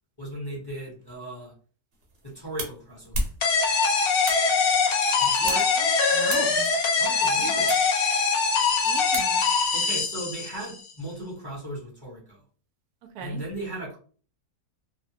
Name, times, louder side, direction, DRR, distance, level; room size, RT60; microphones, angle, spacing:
voice 1, 0.2-1.5 2.2-3.2 5.2-5.6 7.0-7.8 9.7-12.4 13.2-14.0, right 1 dB, 20° left, -5 dB, 0.9 m, -37 dB
sound 1, 1.9-9.7, right 1 dB, 55° right, 1.0 m, -38 dB
sound 2, 3.4-10.8, left 5 dB, 60° left, 0.6 m, -23 dB
voice 2, 5.4-6.7 8.8-9.4 13.1-13.4, right 6 dB, 85° right, 5 dB, 1.1 m, -37 dB
2.9 x 2.1 x 2.7 m, 0.41 s
omnidirectional pair, 1.6 m